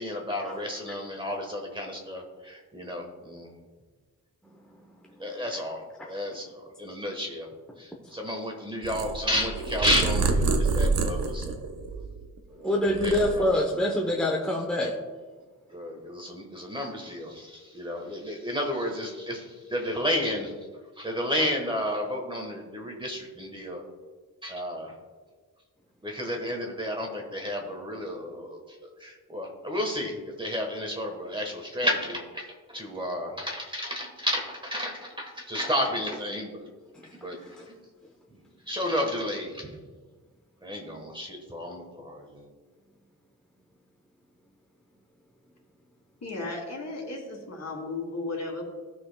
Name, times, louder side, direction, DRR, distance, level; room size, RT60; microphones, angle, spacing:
voice 1, 0.0-3.5 5.2-5.8 6.1-6.5 6.8-7.5 7.8-11.6 12.5-12.7 13.0-13.4 15.7-20.5 21.0-23.8 24.4-24.9 26.0-28.6 29.0-36.6 37.1-37.4 38.7-39.7 40.6-42.5, equal, 15° right, 1 dB, 1.2 m, -32 dB
Purr, 8.8-12.4 12.8-13.9, right 3 dB, 80° right, 0.8 m, -27 dB
voice 2, 12.6-15.0 37.0-37.1 37.5-37.7, left 1 dB, 5° left, -1 dB, 0.8 m, -25 dB
voice 3, 46.2-48.6, left 2 dB, 50° left, 0 dB, 2.4 m, -35 dB
16.0 x 6.0 x 2.2 m, 1.5 s
wide cardioid pair, 135°, 35 cm